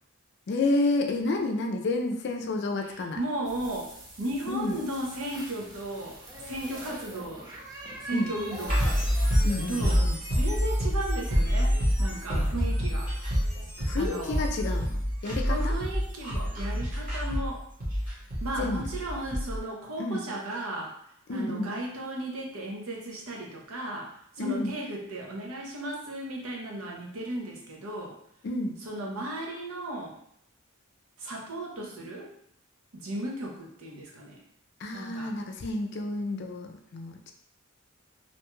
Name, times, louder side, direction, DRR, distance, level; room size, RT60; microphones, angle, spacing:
voice 1, 0.5-3.2 4.5-4.8 8.1-8.3 9.4-10.2 13.9-15.7 18.6-18.8 20.0-20.3 21.3-21.7 24.4-24.8 28.4-28.8 34.8-37.3, left 2 dB, 50° left, 3 dB, 0.4 m, -30 dB
voice 2, 2.8-7.5 8.0-9.0 9.7-10.0 10.3-13.1 14.0-14.5 15.5-17.6 18.4-20.9 21.3-24.1 24.4-28.2 28.8-30.2 31.2-32.3 32.9-34.4 34.9-35.3, right 1 dB, 85° right, -1 dB, 0.7 m, -35 dB
sound 1, 3.4-10.0, right 1 dB, 20° right, 0.5 m, -43 dB
sound 2, 8.7-19.6, equal, 40° right, 0.9 m, -27 dB
2.6 x 2.2 x 3.0 m, 0.70 s
head